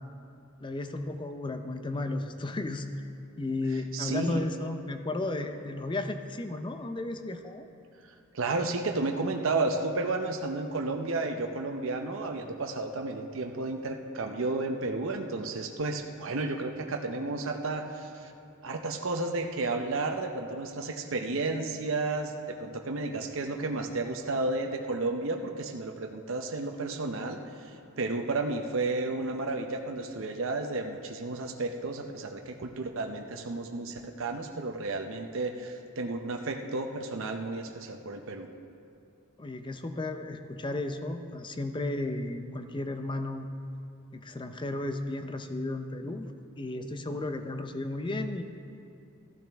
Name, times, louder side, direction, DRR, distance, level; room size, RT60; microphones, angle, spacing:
voice 1, 0.6-2.9 3.4-7.7 39.4-43.5 44.1-48.4, left 2 dB, 20° left, 7 dB, 0.5 m, -34 dB
voice 2, 3.9-4.4 8.3-18.3 18.6-38.5, right 3 dB, 65° right, 3 dB, 0.7 m, -32 dB
14.0 x 12.0 x 3.4 m, 2.5 s
head